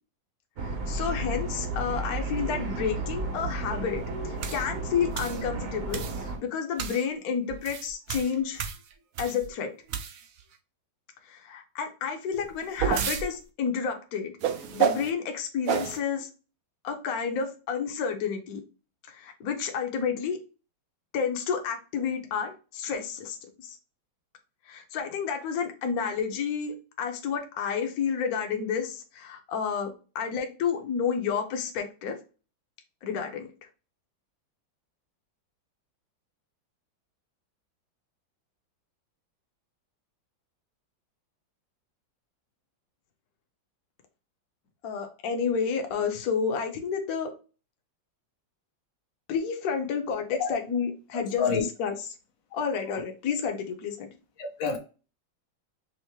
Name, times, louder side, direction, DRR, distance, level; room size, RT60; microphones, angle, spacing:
voice 1, 0.6-8.6 9.2-9.7 11.3-14.3 14.7-16.3 16.8-18.6 19.1-20.4 21.1-23.8 24.7-32.2 33.0-33.5 44.8-47.3 49.3-51.5 51.8-51.9 52.5-54.1, left 6 dB, 60° left, 1.1 m, -30 dB
sound 1, 0.6-6.4, right 2 dB, 55° right, 1.1 m, -33 dB
sound 2, 4.4-4.6 5.2-5.4 5.9-6.2 6.8-7.0 7.5-9.5 9.9-10.4 12.3-13.3 14.4-15.1 15.7-16.0, right 7 dB, 75° right, 0.7 m, -30 dB
voice 2, 51.1-51.7 52.5-52.7 54.4-54.8, left 5 dB, 85° left, 1.7 m, -29 dB
5.6 x 2.1 x 3.0 m
omnidirectional pair, 2.1 m